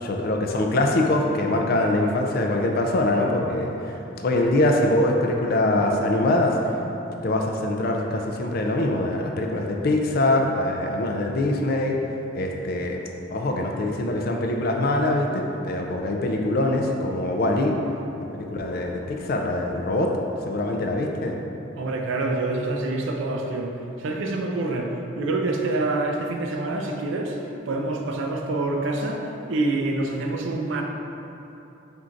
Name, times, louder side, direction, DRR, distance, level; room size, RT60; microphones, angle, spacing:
voice 1, 0.0-4.0 4.2-6.8 7.2-12.0 12.3-13.0 13.3-17.8 18.3-20.1 20.5-21.4, left 1 dB, 45° left, 2 dB, 0.4 m, -23 dB
voice 2, 21.8-23.7 24.0-24.9 25.2-27.4 27.7-30.8, right 2 dB, 65° right, 2 dB, 0.4 m, -26 dB
4.4 x 3.7 x 2.5 m, 3.0 s
head